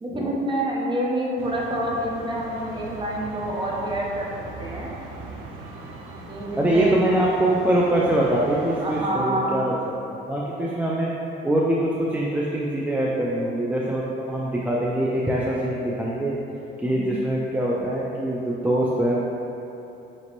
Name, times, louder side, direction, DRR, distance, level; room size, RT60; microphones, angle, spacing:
voice 1, 0.0-4.3 4.6-4.9 6.3-7.0 8.8-9.6 16.8-17.2, right 1 dB, 25° right, -4 dB, 0.8 m, -27 dB
sound 1, 1.4-9.0, right 3 dB, 85° right, 0.5 m, -39 dB
voice 2, 6.6-9.7 10.3-11.1 11.4-16.4 16.8-19.2, right 1 dB, 5° right, -5 dB, 0.4 m, -23 dB
5.0 x 3.0 x 3.0 m, 2.9 s
cardioid pair, 90°, 20 cm